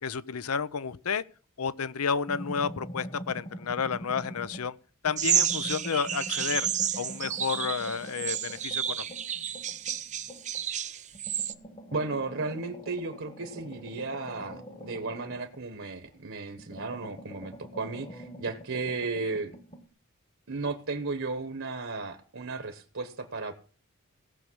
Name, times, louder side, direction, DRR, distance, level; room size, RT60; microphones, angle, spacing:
voice 1, 0.0-1.2 1.6-4.8 5.0-6.7 7.0-9.1, left 6 dB, 90° left, 17 dB, 0.7 m, -31 dB
sound 1, 2.3-4.7 5.1-10.7 11.1-16.2 16.5-19.9, equal, 30° left, 1.4 m, -44 dB
sound 2, 5.2-11.5, right 9 dB, 35° right, 0.7 m, -30 dB
voice 2, 11.9-19.5 20.5-23.6, right 3 dB, 65° right, 8 dB, 1.2 m, -34 dB
17.5 x 6.6 x 6.2 m, 0.40 s
head